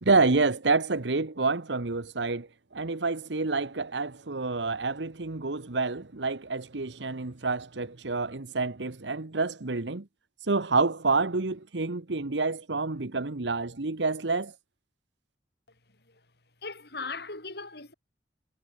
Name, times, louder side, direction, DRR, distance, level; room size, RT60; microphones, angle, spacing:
voice 1, 0.0-2.5 2.7-10.0 10.5-14.5, right 3 dB, 80° right, 1.2 m, -28 dB
voice 2, 16.6-17.9, left 4 dB, 60° left, 8.0 m, -38 dB
head